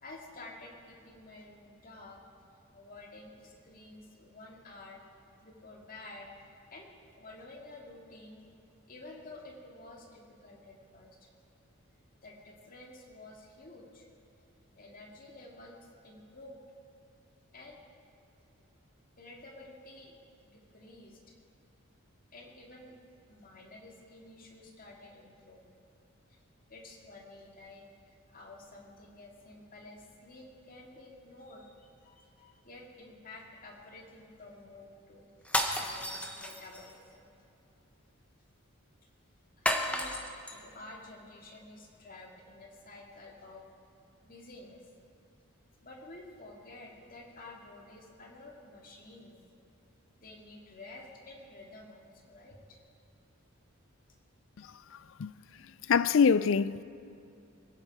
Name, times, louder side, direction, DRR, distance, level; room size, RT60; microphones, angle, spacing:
voice 1, 0.0-2.2 2.7-5.0 5.4-6.3 6.7-6.9 7.2-8.4 8.9-11.3 12.2-14.1 14.8-16.6 17.5-17.8 19.2-20.1 20.4-21.3 22.3-23.0 23.3-25.8 26.3-26.4 26.7-35.3 35.7-37.3 39.6-40.2 40.5-43.7 44.2-44.9 45.8-49.4 50.2-52.8, left 2 dB, 40° left, 2.1 m, -51 dB
sound 1, 35.4-36.9 39.7-40.6, left 1 dB, 5° left, 0.9 m, -32 dB
voice 2, 55.9-56.8, left 6 dB, 60° left, 0.4 m, -24 dB
23.0 x 10.5 x 4.7 m
head